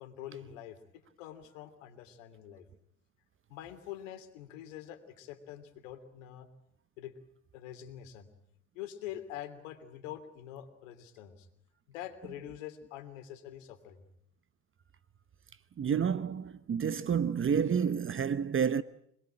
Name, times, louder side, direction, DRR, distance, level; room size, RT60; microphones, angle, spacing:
voice 1, 0.0-2.7 3.5-6.5 7.0-7.1 7.5-8.3 8.7-11.5 11.9-14.0, left 11 dB, 80° left, 3.1 m, -45 dB
voice 2, 15.8-18.8, right 7 dB, 35° right, 1.0 m, -29 dB
26.5 x 21.0 x 8.9 m
hypercardioid pair, 65°, 38 cm